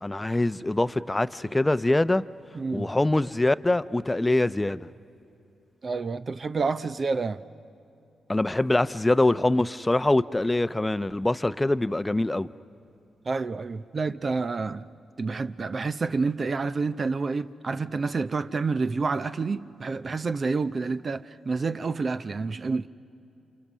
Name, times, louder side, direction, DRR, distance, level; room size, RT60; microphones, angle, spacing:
voice 1, 0.0-2.2 2.7-4.9 8.3-12.5, left 2 dB, 20° left, 0.7 m, -24 dB
voice 2, 2.5-2.9 5.8-7.4 13.3-14.9 15.2-22.9, right 4 dB, 50° right, 0.7 m, -28 dB
29.5 x 27.0 x 6.2 m
supercardioid pair, 50°, 0 cm